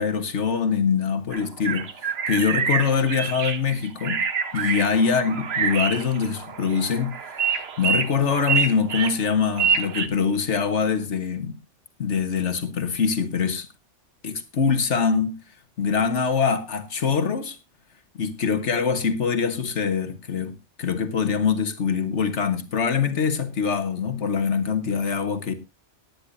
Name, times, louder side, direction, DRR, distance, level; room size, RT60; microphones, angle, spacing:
voice 1, 0.0-4.2 4.5-7.2 7.8-11.6 12.0-13.7 14.2-15.3 15.8-17.6 18.2-25.5, left 6 dB, 70° left, 1.8 m, -24 dB
sound 1, 1.3-10.1, right 6 dB, 60° right, 1.3 m, -26 dB
18.5 x 10.0 x 2.7 m
omnidirectional pair, 1.2 m